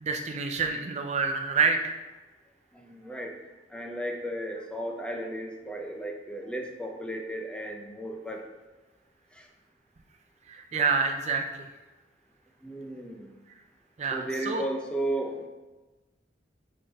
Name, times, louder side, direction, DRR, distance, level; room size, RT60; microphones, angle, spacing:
voice 1, 0.0-2.0 10.5-11.6 14.0-14.6, right 4 dB, 40° right, 4 dB, 0.5 m, -27 dB
voice 2, 2.7-3.3 3.7-8.4 9.4-9.5 12.6-13.3 14.1-15.5, right 1 dB, 5° left, 2 dB, 0.7 m, -34 dB
9.5 x 5.0 x 2.9 m, 1.2 s
head